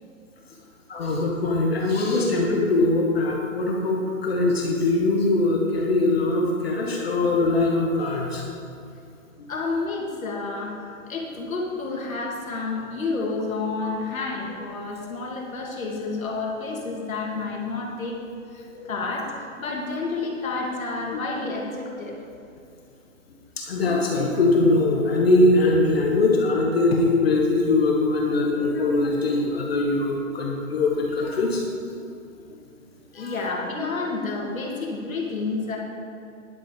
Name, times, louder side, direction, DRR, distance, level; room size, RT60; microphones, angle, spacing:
voice 1, 0.9-8.4 9.4-9.5 18.7-18.9 23.6-31.6 32.5-32.6 33.1-33.4, left 2 dB, 45° left, -1 dB, 1.5 m, -22 dB
voice 2, 9.5-18.2 18.5-22.2 33.1-35.8, left 3 dB, 75° left, -2 dB, 2.7 m, -30 dB
11.0 x 8.2 x 5.3 m, 2.5 s
hypercardioid pair, 175°, 41 cm